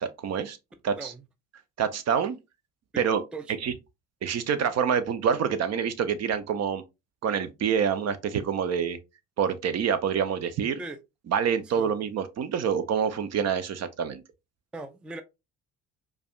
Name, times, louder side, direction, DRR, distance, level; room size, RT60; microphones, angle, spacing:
voice 1, 0.0-0.6 0.8-1.1 1.8-2.4 3.0-3.2 3.6-3.7 4.2-6.8 7.2-9.0 9.4-10.8 11.3-14.2, right 7 dB, 45° right, 0.6 m, -26 dB
voice 2, 14.7-15.2, right 2 dB, 5° right, 0.4 m, -38 dB
4.7 x 2.3 x 2.3 m
hypercardioid pair, 60°, 35 cm